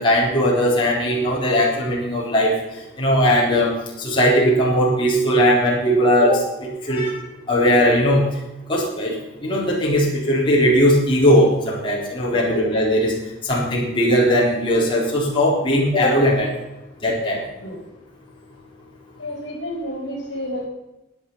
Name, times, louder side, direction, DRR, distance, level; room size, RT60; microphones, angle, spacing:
voice 1, 0.0-2.5 3.0-3.7 4.0-7.2 7.5-8.3 8.7-9.1 9.4-13.1 13.5-16.5 17.0-17.4, equal, 25° left, -4 dB, 4.1 m, -18 dB
voice 2, 19.2-20.7, equal, 60° left, 0 dB, 3.9 m, -30 dB
16.5 x 9.8 x 5.7 m, 0.95 s
head